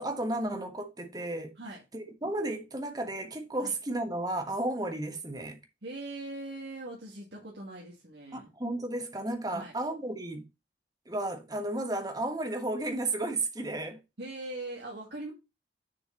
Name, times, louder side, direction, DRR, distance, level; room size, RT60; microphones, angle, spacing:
voice 1, 0.0-1.5 1.9-5.6 8.3-10.5 11.1-14.0, right 1 dB, 20° right, 1.3 m, -33 dB
voice 2, 5.8-8.5 9.5-9.7 14.2-15.3, right 2 dB, 75° right, 2.2 m, -41 dB
6.9 x 6.1 x 3.9 m
head